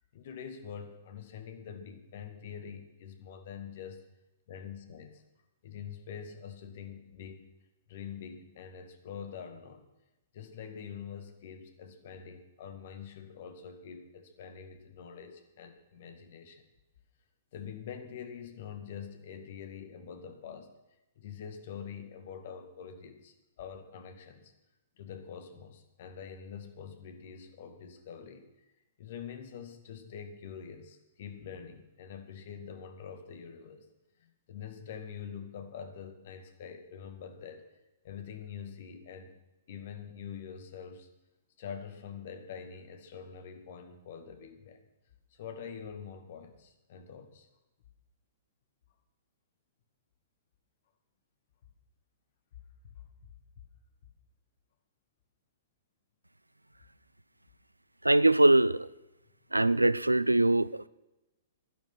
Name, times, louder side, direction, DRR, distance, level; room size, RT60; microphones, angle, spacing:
voice 1, 0.1-4.0 4.5-5.2 5.6-7.5 7.9-9.9 10.3-16.6 17.5-20.7 21.2-24.5 25.0-28.5 29.0-33.9 34.2-37.7 38.0-39.3 39.7-41.1 41.6-44.8 45.3-47.5 52.9-53.3, left 7 dB, 50° left, 7 dB, 2.2 m, -45 dB
voice 2, 58.0-58.9 59.5-60.9, right 2 dB, 85° right, 20 dB, 0.5 m, -22 dB
16.0 x 11.0 x 6.1 m, 1.0 s
figure-of-eight pair, 110°, 0 cm